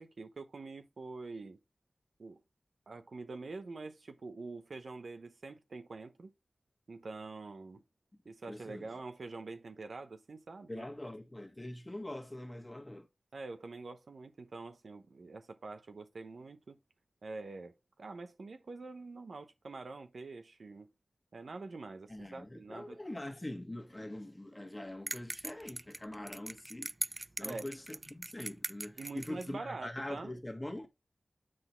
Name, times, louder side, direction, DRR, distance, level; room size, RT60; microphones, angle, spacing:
voice 1, 0.0-1.6 2.2-2.4 2.9-6.3 6.9-7.8 8.2-10.9 13.3-16.8 17.2-20.9 21.3-23.0 27.4-27.7 29.0-30.3, right 3 dB, 75° right, 0.8 m, -45 dB
voice 2, 8.5-8.9 10.7-13.1 22.1-30.9, left 1 dB, 25° left, 1.5 m, -43 dB
sound 1, 25.1-29.5, right 2 dB, 30° right, 0.3 m, -41 dB
7.7 x 4.0 x 4.4 m
cardioid pair, 40°, 0 cm